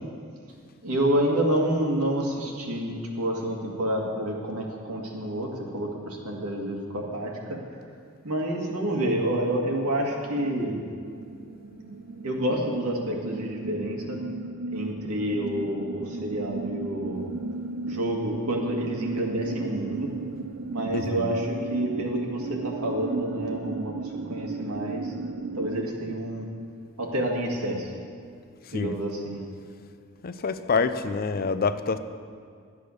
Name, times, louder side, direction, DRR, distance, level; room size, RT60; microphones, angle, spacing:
voice 1, 0.8-7.6 8.2-10.8 12.2-14.2 14.7-17.3 17.9-20.1 20.7-25.1 25.6-26.5 27.0-27.9 28.7-29.4, right 1 dB, 75° right, -1 dB, 2.0 m, -28 dB
sound 1, 9.4-9.8 10.1-25.8, right 3 dB, 55° right, 0.6 m, -35 dB
voice 2, 20.9-21.3 28.7-28.9 30.2-32.0, left 4 dB, 45° left, 11 dB, 0.5 m, -26 dB
12.5 x 8.4 x 6.5 m, 2.1 s
head